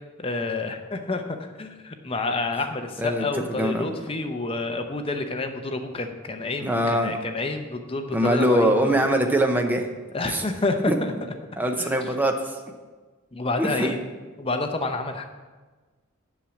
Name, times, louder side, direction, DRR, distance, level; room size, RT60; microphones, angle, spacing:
voice 1, 0.2-9.0 10.1-11.1 11.8-11.9 13.3-14.0 14.4-15.3, left 2 dB, 25° left, 5 dB, 0.7 m, -29 dB
voice 2, 3.0-3.9 6.6-7.1 8.1-9.9 10.3-10.4 10.8-10.9 11.6-12.6 13.6-13.9, equal, 10° right, 4 dB, 0.7 m, -23 dB
7.4 x 6.2 x 7.1 m, 1.3 s
head